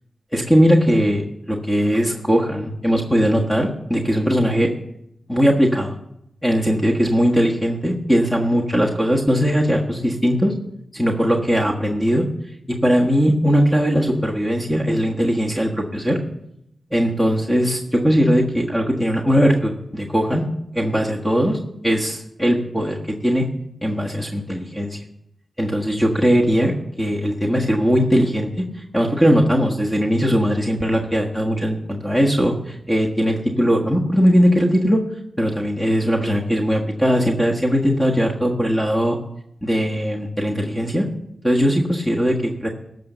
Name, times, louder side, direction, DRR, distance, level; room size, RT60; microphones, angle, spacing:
voice 1, 0.3-1.2 1.5-4.7 5.3-5.9 6.4-10.5 10.9-12.2 12.7-16.2 16.9-20.4 20.7-23.5 23.8-25.0 25.6-28.5 28.9-35.0 35.4-39.2 39.6-41.1 41.4-42.7, equal, 10° left, 0 dB, 1.4 m, -19 dB
13.5 x 5.3 x 6.8 m, 0.80 s
cardioid pair, 60°, 0 cm